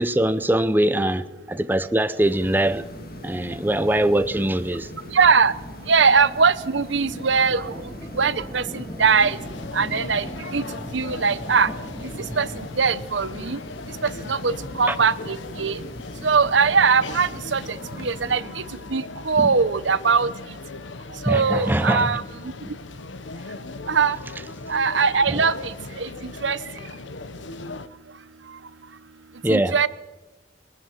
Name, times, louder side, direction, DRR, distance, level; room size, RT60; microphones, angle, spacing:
voice 1, 0.0-2.8 3.2-4.9 14.9-15.0 19.4-19.5 21.3-22.2 22.7-22.8 25.3-25.4 29.4-29.8, right 1 dB, 10° right, 0.7 m, -22 dB
sound 1, 2.2-18.4, left 1 dB, 50° left, 2.1 m, -40 dB
voice 2, 5.1-5.5 5.9-7.7 8.2-9.4 9.7-10.3 10.5-10.6 10.9-11.7 12.4-13.6 14.0-15.8 16.2-17.6 18.0-18.4 18.9-20.3 21.2-22.2 23.9-24.2 24.7-25.7 26.0-26.6 29.5-29.9, right 5 dB, 85° right, 0.9 m, -21 dB
sound 2, 7.1-12.7, equal, 15° left, 3.6 m, -39 dB
sound 3, 9.1-27.9, left 3 dB, 90° left, 1.0 m, -38 dB
21.0 x 20.0 x 7.3 m
head